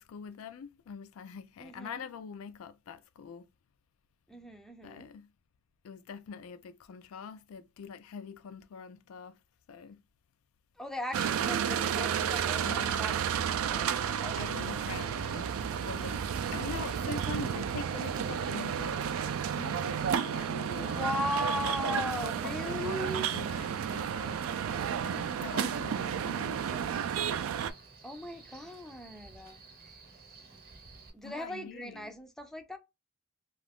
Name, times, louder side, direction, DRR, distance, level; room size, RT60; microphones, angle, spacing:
voice 1, 0.0-3.5 4.8-5.3 5.8-9.4 9.7-10.0 12.6-13.1 14.4-15.5 15.8-21.1 21.9-24.5 25.0-26.6 31.2-32.1, left 6 dB, 90° left, 0.3 m, -44 dB
voice 2, 1.6-2.1 4.3-5.1 10.8-12.7 13.0-13.9 14.2-14.8 20.8-23.3 28.0-29.9 31.1-32.8, left 1 dB, ahead, 0.4 m, -38 dB
sound 1, 11.1-27.7, right 8 dB, 80° right, 0.3 m, -32 dB
Male speech man speaking, 14.9-31.1, right 4 dB, 45° right, 0.8 m, -53 dB
2.4 x 2.4 x 3.4 m
head